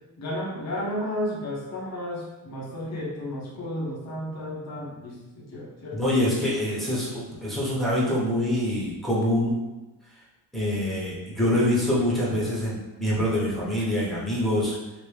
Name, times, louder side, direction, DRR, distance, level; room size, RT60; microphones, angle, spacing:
voice 1, 0.2-6.0 6.7-6.9, left 1 dB, 45° left, -4 dB, 1.1 m, -33 dB
voice 2, 5.9-9.6 10.5-14.8, left 1 dB, ahead, -7 dB, 1.0 m, -25 dB
3.0 x 2.9 x 3.3 m, 1.1 s
cardioid pair, 140°, 36 cm